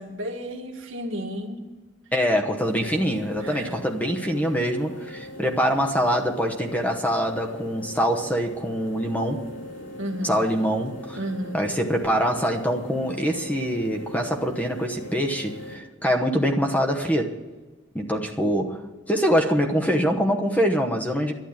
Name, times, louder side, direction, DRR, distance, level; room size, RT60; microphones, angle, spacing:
voice 1, 0.0-1.7 3.4-3.8 10.0-10.5 11.2-11.7, equal, 75° right, 1.8 m, -32 dB
voice 2, 2.1-9.4 10.2-11.2 11.5-17.4 17.9-21.3, equal, 10° left, 1.0 m, -24 dB
sound 1, 2.6-15.7, left 1 dB, 75° left, 5.7 m, -40 dB
12.0 x 9.9 x 8.8 m
head